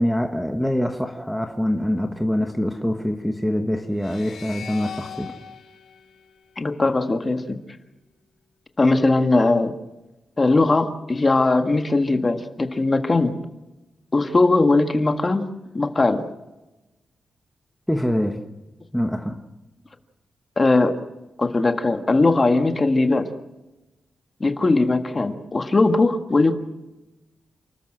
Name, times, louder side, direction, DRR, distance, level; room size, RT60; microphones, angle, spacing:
voice 1, 0.0-5.4 17.9-18.4 18.9-19.4, equal, ahead, 1.2 m, -24 dB
sound 1, 3.9-7.2, left 7 dB, 80° left, 2.3 m, -40 dB
voice 2, 6.6-7.6 8.8-9.7 10.4-13.3 14.1-15.4 15.7-16.2 20.6-21.0 21.4-23.3 24.4-26.5, left 3 dB, 25° left, 1.7 m, -19 dB
29.5 x 13.5 x 7.7 m
wide cardioid pair, 165°, 0 cm